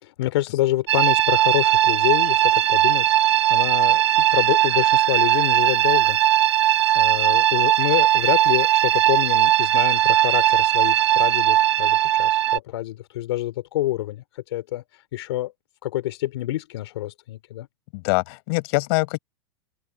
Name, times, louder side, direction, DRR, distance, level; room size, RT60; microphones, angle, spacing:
voice 1, 0.0-6.2 7.0-15.5 15.8-17.7, left 15 dB, 75° left, 3.6 m, -27 dB
sound 1, 0.9-12.6, right 13 dB, 80° right, 2.0 m, -19 dB
voice 2, 17.9-19.2, left 28 dB, 60° left, 7.3 m, -23 dB
supercardioid pair, 130°, 14 cm